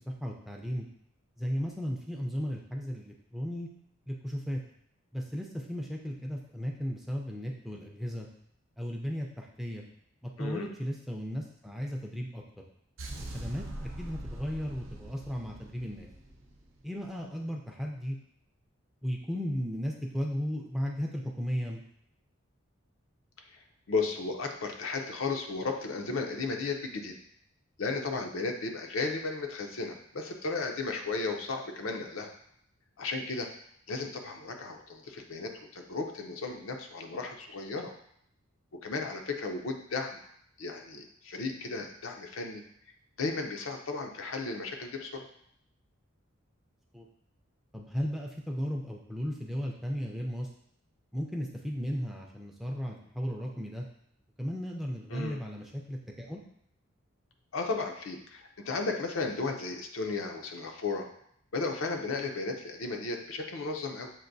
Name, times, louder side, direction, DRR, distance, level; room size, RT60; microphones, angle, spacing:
voice 1, 0.1-0.9 1.4-3.7 4.1-4.6 5.1-8.3 8.8-9.8 10.2-12.4 13.2-16.1 16.8-18.2 19.0-21.8 46.9-47.1 47.7-50.5 51.1-53.9 54.4-56.4, equal, ahead, -1 dB, 0.4 m, -35 dB
voice 2, 10.4-10.7 23.9-27.1 27.8-32.3 33.0-33.5 33.9-37.9 38.8-40.2 40.6-42.6 43.2-45.3 55.1-55.4 57.5-61.1 61.5-64.1, left 3 dB, 70° left, 3 dB, 0.6 m, -34 dB
sound 1, 13.0-17.1, right 1 dB, 70° right, 0.7 m, -42 dB
7.3 x 2.6 x 2.6 m, 0.70 s
head